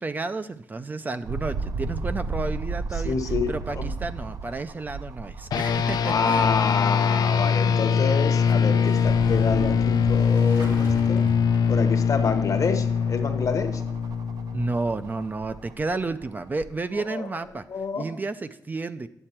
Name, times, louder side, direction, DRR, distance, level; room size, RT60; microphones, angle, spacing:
voice 1, 0.0-3.2 3.5-6.5 14.5-17.6 18.0-19.1, right 3 dB, 25° right, 11 dB, 0.4 m, -31 dB
sound 1, 1.2-6.3 6.7-6.8 8.2-16.7 17.5-17.6, right 4 dB, 65° right, 0.7 m, -35 dB
voice 2, 3.0-3.9 6.0-11.3 11.7-13.8 17.1-17.3 17.7-18.2, left 5 dB, 55° left, 7 dB, 0.9 m, -28 dB
sound 2, 5.5-15.2, left 6 dB, 90° left, 0.4 m, -23 dB
Motorcycle / Engine starting, 6.2-12.0, equal, 85° right, 2.2 m, -39 dB
9.9 x 7.5 x 4.4 m, 0.75 s
wide cardioid pair, 155°, 7 cm